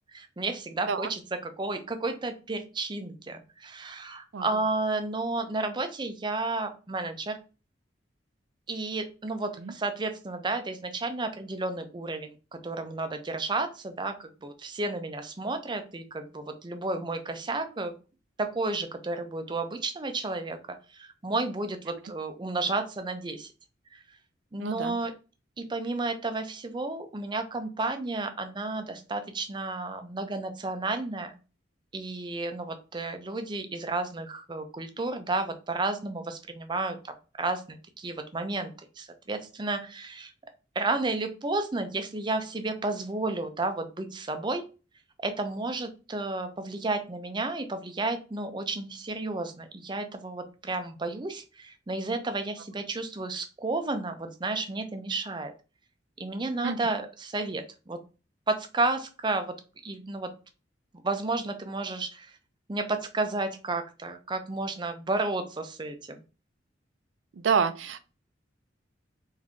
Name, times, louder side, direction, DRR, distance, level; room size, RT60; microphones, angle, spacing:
voice 1, 0.1-7.4 8.7-12.3 12.6-17.9 18.4-23.5 23.9-24.0 24.5-25.1 25.6-31.3 31.9-38.7 39.0-40.3 40.8-44.6 45.2-55.5 56.2-58.0 58.5-59.6 59.8-60.3 61.0-62.4 62.7-66.2, right 3 dB, 25° right, 7 dB, 0.5 m, -32 dB
voice 2, 24.6-25.0 56.6-56.9 67.4-68.0, right 6 dB, 85° right, 12 dB, 0.5 m, -28 dB
3.6 x 2.7 x 3.6 m, 0.32 s
head